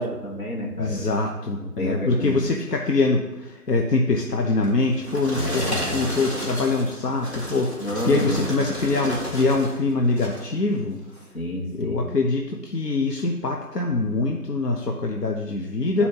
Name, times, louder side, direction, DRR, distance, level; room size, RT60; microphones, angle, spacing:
voice 1, 0.0-1.0 1.6-2.5 5.3-6.1 7.8-8.5 11.3-12.1 15.8-16.1, left 1 dB, 65° left, -1 dB, 1.6 m, -29 dB
voice 2, 0.8-11.0 11.8-16.1, left 3 dB, 85° left, 2 dB, 0.8 m, -24 dB
sound 1, 4.6-9.8 10.1-10.5 11.1-11.2, equal, 45° left, 1.7 m, -32 dB
9.2 x 4.2 x 2.8 m, 1.1 s
figure-of-eight pair, 175°, 47 cm